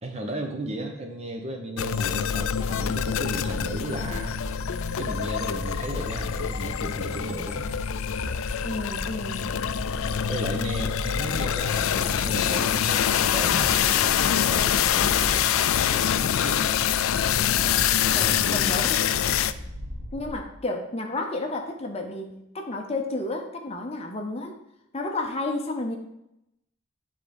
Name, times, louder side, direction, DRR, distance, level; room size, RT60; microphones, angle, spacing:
voice 1, 0.0-4.4 5.0-7.7 10.3-16.7 18.0-18.9, right 1 dB, 30° right, 3 dB, 0.9 m, -35 dB
sound 1, 1.8-19.5, left 9 dB, 80° left, 0.4 m, -25 dB
sound 2, 2.3-20.3, equal, 60° right, 1.1 m, -37 dB
voice 2, 8.6-9.6 18.1-19.1 20.1-24.6 24.9-26.0, left 2 dB, 30° left, 3 dB, 0.7 m, -31 dB
10.0 x 3.6 x 5.2 m, 0.85 s
head